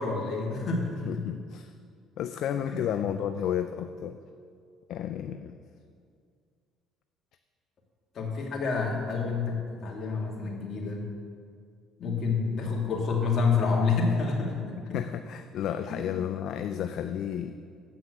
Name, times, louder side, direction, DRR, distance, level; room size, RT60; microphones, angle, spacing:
voice 1, 0.0-1.2 2.7-2.8 8.1-11.1 12.0-15.0 15.9-16.0, left 4 dB, 50° left, -1 dB, 2.1 m, -28 dB
voice 2, 1.1-1.7 2.2-4.2 4.9-5.5 14.9-17.6, left 9 dB, 65° left, 9 dB, 0.4 m, -32 dB
8.1 x 5.9 x 7.9 m, 2.2 s
supercardioid pair, 90°, 0 cm